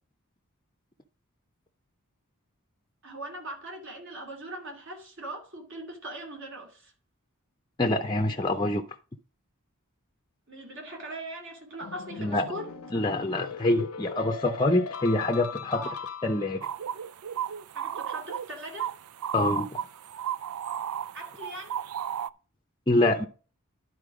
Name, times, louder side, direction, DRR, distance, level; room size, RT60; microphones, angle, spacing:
voice 1, 3.0-6.9 10.5-12.8 15.7-16.0 17.7-19.0 21.1-21.8, right 1 dB, 55° right, 2.5 m, -40 dB
voice 2, 7.8-8.8 12.2-12.4 12.9-15.8 16.2-16.7 19.3-19.7 22.9-23.3, left 2 dB, 20° left, 0.6 m, -25 dB
sound 1, 11.8-16.7, left 6 dB, 75° left, 0.7 m, -40 dB
sound 2, 16.6-22.3, right 9 dB, 75° right, 0.4 m, -34 dB
11.0 x 4.4 x 4.9 m
head